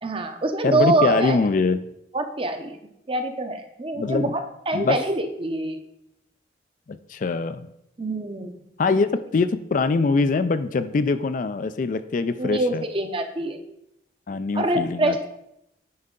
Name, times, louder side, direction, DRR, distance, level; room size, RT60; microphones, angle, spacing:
voice 1, 0.0-1.4 2.1-2.8 3.1-4.4 4.7-5.8 8.0-8.6 12.4-13.6 14.5-15.3, right 2 dB, 30° right, 7 dB, 0.7 m, -25 dB
voice 2, 0.6-1.8 4.0-4.3 4.7-5.0 6.9-7.7 8.8-9.1 9.3-12.8 14.3-15.3, left 4 dB, 45° left, 11 dB, 0.4 m, -23 dB
9.5 x 5.4 x 3.8 m, 0.81 s
head